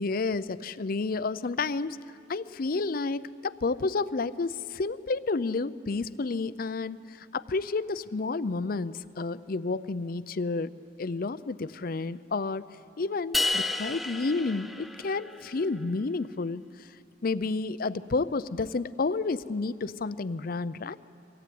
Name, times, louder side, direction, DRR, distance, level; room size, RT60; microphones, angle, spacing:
voice 1, 0.0-2.0 2.3-10.7 11.0-12.6 13.0-16.6 17.2-21.0, left 3 dB, 45° left, 15 dB, 0.5 m, -30 dB
sound 1, 13.3-15.6, left 2 dB, ahead, 0.6 m, -31 dB
24.5 x 17.0 x 9.4 m, 2.6 s
head